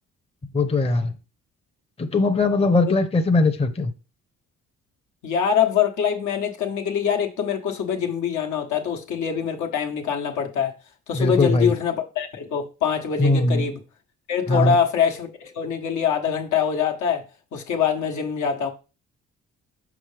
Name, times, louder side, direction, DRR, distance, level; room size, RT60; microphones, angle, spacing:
voice 1, 0.5-1.1 2.0-3.9 11.1-11.7 13.2-13.7 14.5-14.8, left 2 dB, 20° left, 0.7 m, -20 dB
voice 2, 5.2-10.7 11.1-13.8 14.3-17.2 17.5-18.7, left 7 dB, 75° left, 1.2 m, -24 dB
6.0 x 5.5 x 3.3 m
cardioid pair, 90°, 30 cm